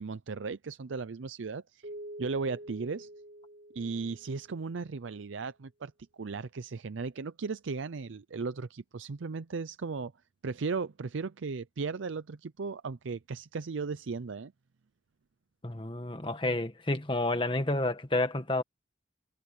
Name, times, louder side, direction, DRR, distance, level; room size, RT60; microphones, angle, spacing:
voice 1, 0.0-1.9 2.2-3.1 3.7-10.1 10.4-14.5, right 4 dB, 90° right, 0.6 m, -36 dB
Keyboard (musical), 1.8-4.8, right 1 dB, 60° right, 1.0 m, -46 dB
voice 2, 15.6-18.6, left 2 dB, 25° left, 1.6 m, -30 dB
head